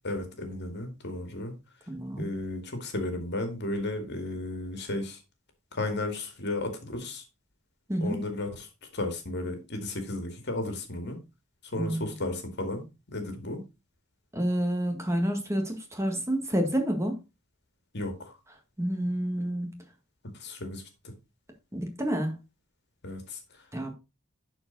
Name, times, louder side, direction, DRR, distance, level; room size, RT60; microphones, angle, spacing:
voice 1, 0.0-1.5 2.2-5.2 5.7-7.2 8.0-8.7 8.9-11.2 11.6-13.6 17.9-18.3 20.3-21.1 23.0-23.4, left 2 dB, 55° left, 2.1 m, -34 dB
voice 2, 1.9-2.3 7.9-8.2 11.8-12.1 14.3-17.2 18.8-19.8 21.7-22.3 23.7-23.9, right 1 dB, 15° right, 1.7 m, -29 dB
11.5 x 4.6 x 3.9 m
head